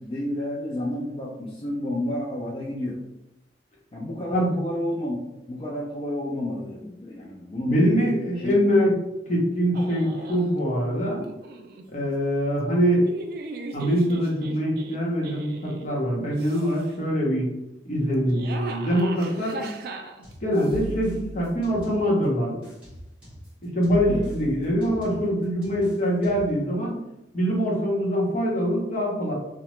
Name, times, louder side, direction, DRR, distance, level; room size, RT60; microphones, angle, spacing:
voice 1, 0.0-3.0 3.9-5.2 5.5-8.0 8.4-8.6 24.1-24.3, left 1 dB, 30° left, -4 dB, 0.4 m, -30 dB
voice 2, 7.7-9.0 9.3-11.2 11.9-13.1 13.7-17.5 17.8-19.6 20.4-22.6 23.6-27.0 27.3-29.3, equal, 45° left, -3 dB, 0.8 m, -23 dB
sound 1, 9.7-10.5 11.2-11.8 12.7-15.9 16.3-16.9 18.1-20.8, right 2 dB, 60° right, 0.3 m, -39 dB
sound 2, 20.2-22.3 22.6-26.6, equal, 5° right, 1.3 m, -40 dB
2.9 x 2.0 x 3.0 m, 0.90 s
head